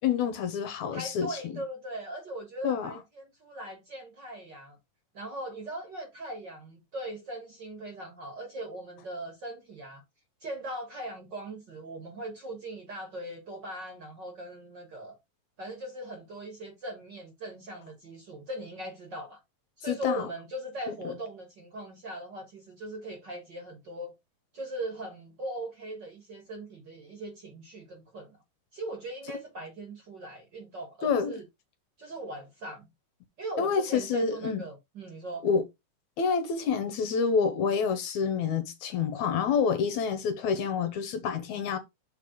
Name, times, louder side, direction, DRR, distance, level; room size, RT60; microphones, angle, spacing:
voice 1, 0.0-1.3 2.6-3.0 19.9-20.3 31.0-31.4 33.6-34.6 35.4-35.6 36.2-41.8, left 6 dB, 70° left, 2.1 m, -28 dB
voice 2, 0.9-4.8 5.1-10.0 10.4-15.1 15.6-19.4 19.8-24.1 24.5-28.4 28.7-31.4 32.0-32.9 33.4-35.4, right 1 dB, 45° right, 1.6 m, -39 dB
6.8 x 3.4 x 5.0 m
omnidirectional pair, 3.8 m